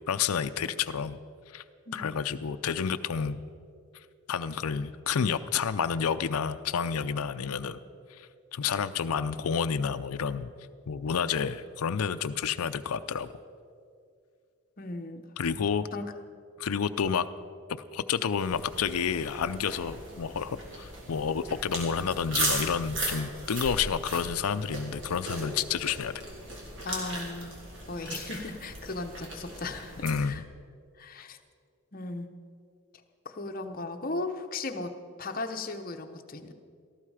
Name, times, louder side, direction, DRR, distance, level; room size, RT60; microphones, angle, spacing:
voice 1, 0.1-1.2 1.5-1.6 1.9-3.4 4.3-7.8 8.2-10.5 10.9-13.3 15.4-15.9 16.6-17.3 17.9-26.2 30.0-30.4, left 6 dB, 85° left, 10 dB, 0.5 m, -30 dB
voice 2, 14.8-15.6 15.9-16.1 26.8-27.5 27.9-30.4 31.0-31.4 31.9-32.3 33.2-36.5, left 2 dB, 40° left, 6 dB, 0.9 m, -37 dB
sound 1, 18.4-30.2, right 1 dB, 55° right, 3.2 m, -37 dB
18.0 x 14.0 x 4.9 m, 2.4 s
head